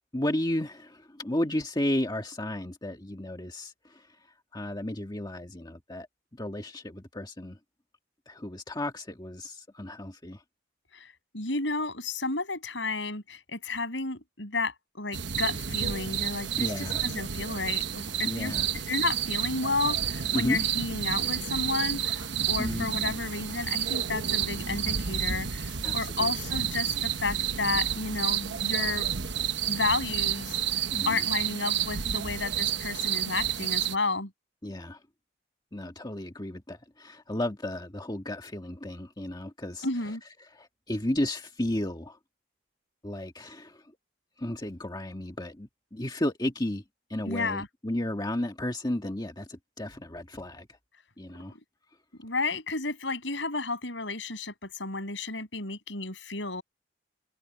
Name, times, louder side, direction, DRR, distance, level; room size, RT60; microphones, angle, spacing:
voice 1, 0.1-4.2 4.5-6.1 6.3-7.6 8.3-10.4 16.5-17.0 18.2-18.7 20.3-20.6 22.6-22.9 25.8-26.3 30.9-31.3 34.6-35.0 35.7-39.9 40.5-42.2 43.0-43.8 44.4-46.8 47.1-50.8 51.2-51.6, left 1 dB, 20° left, 1.7 m, -33 dB
voice 2, 10.9-18.5 18.9-29.1 29.7-30.6 31.1-34.3 39.8-40.2 47.3-47.7 52.2-56.6, left 3 dB, 75° left, 7.3 m, -32 dB
sound 1, 15.1-33.9, right 9 dB, 65° right, 1.2 m, -30 dB
head